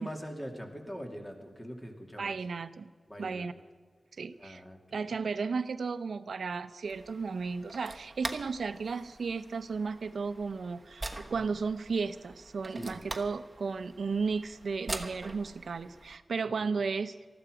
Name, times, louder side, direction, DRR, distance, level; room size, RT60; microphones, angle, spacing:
voice 1, 0.0-2.4 3.1-3.5 4.4-5.1 12.7-13.2 16.5-16.8, equal, 15° left, 2 dB, 2.5 m, -43 dB
voice 2, 2.2-2.9 3.2-3.5 4.2-4.6 4.9-17.1, right 4 dB, 80° right, 12 dB, 0.7 m, -34 dB
sound 1, 6.8-16.2, right 2 dB, 25° right, 1.2 m, -44 dB
19.5 x 14.0 x 5.0 m, 1.5 s
wide cardioid pair, 100°, 0 cm